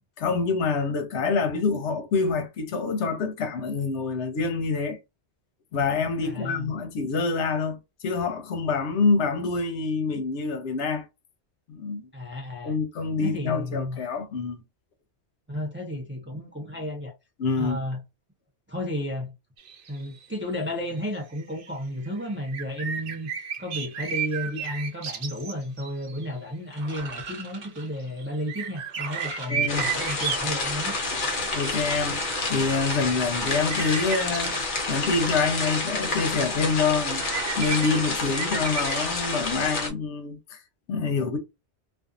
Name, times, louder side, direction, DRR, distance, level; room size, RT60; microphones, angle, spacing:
voice 1, 0.2-5.0 5.7-11.1 11.7-12.1 12.6-14.6 17.4-17.8 29.5-29.9 31.1-31.2 31.5-32.2 32.5-34.6 34.9-37.2 37.5-40.6 40.9-41.4, left 4 dB, 80° left, 0.9 m, -26 dB
voice 2, 6.2-6.7 12.1-12.8 13.2-14.0 15.5-17.1 17.6-18.0 18.7-19.3 19.9-23.3 23.6-31.0, equal, 20° right, 0.4 m, -32 dB
sound 1, 19.6-20.2 20.7-20.8 21.0-21.1 21.4-21.7 22.1-26.3 27.2-27.5 27.8-30.6 33.7-36.4 36.6-36.7 37.1-39.4, right 8 dB, 85° right, 1.0 m, -33 dB
sound 2, 26.7-39.0, right 4 dB, 60° right, 1.0 m, -42 dB
sound 3, 29.7-39.9, left 3 dB, 55° left, 0.8 m, -29 dB
2.5 x 2.3 x 2.4 m
omnidirectional pair, 1.1 m